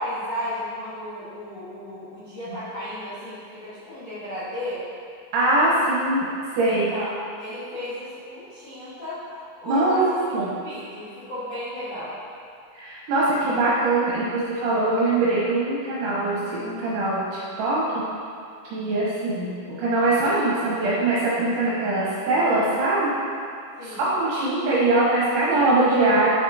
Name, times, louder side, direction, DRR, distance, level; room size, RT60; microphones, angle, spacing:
voice 1, 0.0-4.8 6.6-12.2 23.8-24.0, equal, 65° left, -15 dB, 1.6 m, -34 dB
voice 2, 5.3-6.2 6.5-6.9 9.6-10.5 12.7-18.0 18.6-23.1 23.8-26.3, right 2 dB, 75° right, -7 dB, 3.2 m, -22 dB
9.1 x 6.0 x 2.8 m, 2.4 s
omnidirectional pair, 5.8 m